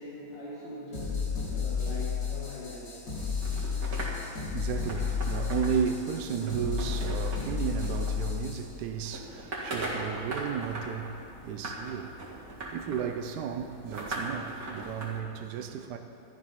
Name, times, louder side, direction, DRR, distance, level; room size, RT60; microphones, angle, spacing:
voice 1, 0.0-3.0, left 2 dB, 85° left, 3.1 m, -42 dB
sound 1, 0.9-8.6, left 6 dB, 60° left, 3.8 m, -32 dB
sound 2, 3.2-15.2, right 1 dB, 55° right, 2.5 m, -40 dB
voice 2, 3.8-16.0, right 7 dB, 75° right, 1.2 m, -34 dB
13.0 x 10.5 x 5.7 m
omnidirectional pair, 1.9 m